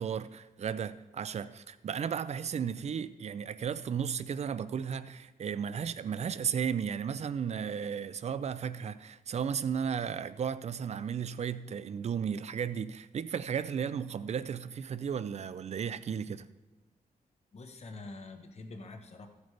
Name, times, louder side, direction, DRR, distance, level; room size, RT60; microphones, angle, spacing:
voice 1, 0.0-16.4, right 7 dB, 45° right, 0.4 m, -34 dB
voice 2, 17.5-19.3, left 3 dB, 45° left, 1.1 m, -46 dB
15.5 x 8.1 x 3.3 m
wide cardioid pair, 165°, 15 cm